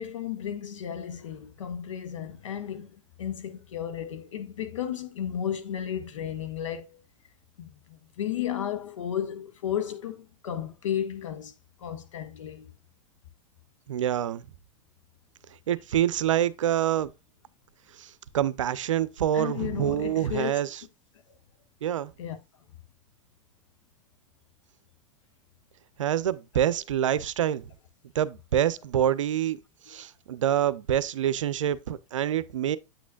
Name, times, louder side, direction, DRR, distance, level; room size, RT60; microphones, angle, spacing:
voice 1, 0.0-7.0 7.6-11.5 11.8-12.7 19.3-20.5 22.2-22.4, left 10 dB, 80° left, 1.2 m, -33 dB
voice 2, 13.9-14.4 15.7-17.1 18.0-20.7 21.8-22.1 26.0-27.7 28.1-29.6 29.9-32.8, right 10 dB, 85° right, 0.5 m, -26 dB
8.3 x 6.1 x 2.3 m
hypercardioid pair, 100°, 16 cm